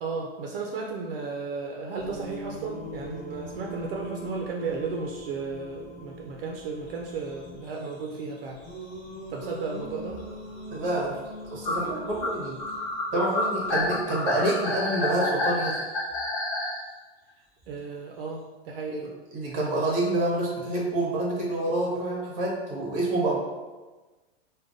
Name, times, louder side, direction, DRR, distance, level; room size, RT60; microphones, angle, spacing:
voice 1, 0.0-8.6 9.3-10.2 17.7-19.0, right 4 dB, 55° right, 0 dB, 0.5 m, -34 dB
Singing, 1.9-14.0, equal, 5° left, 1.1 m, -43 dB
sound 1, 7.7-7.8 8.1-8.3 9.0-9.1 9.3-9.4 10.1-10.3 10.8-10.9 11.6-16.8, left 2 dB, 25° left, 0.8 m, -29 dB
voice 2, 10.7-12.6 13.1-15.8 18.9-23.4, right 2 dB, 25° right, -3 dB, 0.8 m, -28 dB
4.8 x 2.2 x 2.5 m, 1.2 s
supercardioid pair, 165°, 33 cm